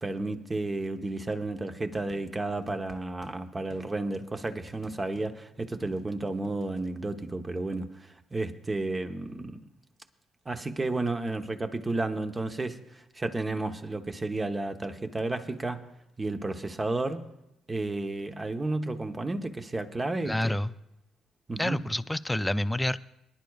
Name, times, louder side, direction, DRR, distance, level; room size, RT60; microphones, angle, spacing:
voice 1, 0.0-9.6 10.4-15.9 16.2-17.3 17.7-20.6 21.5-21.8, right 2 dB, 20° right, 0.9 m, -32 dB
sound 1, 1.9-3.3 3.7-6.8, left 3 dB, 35° left, 1.0 m, -53 dB
voice 2, 20.3-20.7 21.6-23.0, left 1 dB, 10° left, 0.4 m, -28 dB
23.5 x 10.5 x 2.4 m
cardioid pair, 85°, 0 cm